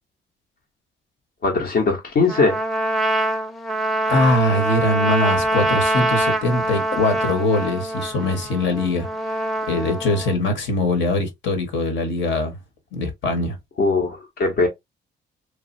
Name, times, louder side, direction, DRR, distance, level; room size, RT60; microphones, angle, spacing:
voice 1, 1.4-2.6 13.8-14.7, left 3 dB, 55° left, 0.8 m, -20 dB
Trumpet, 2.3-10.3, right 1 dB, ahead, 0.5 m, -24 dB
voice 2, 4.1-9.1 9.7-12.6 12.9-13.6, left 2 dB, 70° left, 1.1 m, -22 dB
3.1 x 2.4 x 2.5 m
cardioid pair, 90°, 20 cm